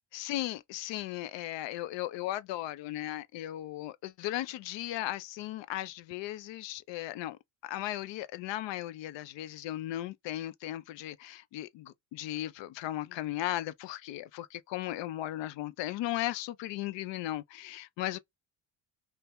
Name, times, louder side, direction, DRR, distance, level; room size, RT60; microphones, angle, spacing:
voice 1, 0.1-18.2, left 14 dB, 65° left, 0.5 m, -36 dB
2.7 x 2.2 x 3.4 m
supercardioid pair, 75°, 47 cm